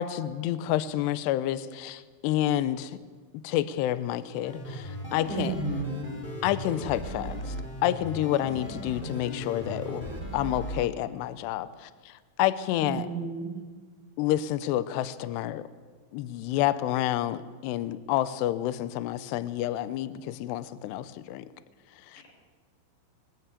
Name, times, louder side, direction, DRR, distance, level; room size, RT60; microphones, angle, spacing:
voice 1, 0.0-3.0 3.4-5.6 6.4-7.5 7.8-13.1 14.2-15.7 16.1-21.5 22.1-22.2, left 13 dB, 80° left, 14 dB, 2.4 m, -29 dB
sound 1, 4.4-10.8, equal, 20° left, 1.4 m, -37 dB
voice 2, 5.3-6.1 12.8-13.5, right 3 dB, 40° left, -1 dB, 6.6 m, -32 dB
22.5 x 14.0 x 8.4 m, 1.5 s
omnidirectional pair, 5.8 m